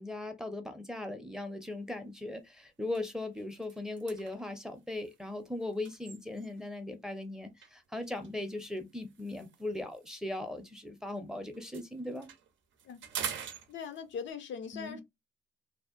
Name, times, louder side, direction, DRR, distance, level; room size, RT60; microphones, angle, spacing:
voice 1, 0.0-12.3 14.7-15.0, left 2 dB, 5° right, 0.5 m, -39 dB
sound 1, 1.7-1.9 2.3-2.5 2.8-6.8 7.6-11.2 11.5-14.3, right 7 dB, 90° right, 0.5 m, -46 dB
voice 2, 13.7-15.0, left 6 dB, 75° left, 0.5 m, -40 dB
2.7 x 2.0 x 2.4 m
cardioid pair, 100°, 19 cm